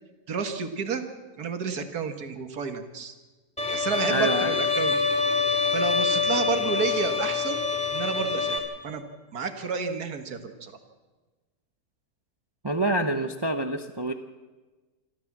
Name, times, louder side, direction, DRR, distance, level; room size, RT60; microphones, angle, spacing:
voice 1, 0.3-1.0 1.4-3.1 3.7-4.9 5.7-7.6 7.9-8.6 8.8-9.0 9.3-10.7, right 5 dB, 65° right, 7 dB, 2.1 m, -30 dB
Bowed string instrument, 3.6-8.6, left 5 dB, 5° left, 2.5 m, -25 dB
voice 2, 4.1-4.5 12.6-14.1, right 1 dB, 20° right, 7 dB, 0.7 m, -26 dB
26.0 x 13.5 x 7.4 m, 1.3 s
omnidirectional pair, 1.7 m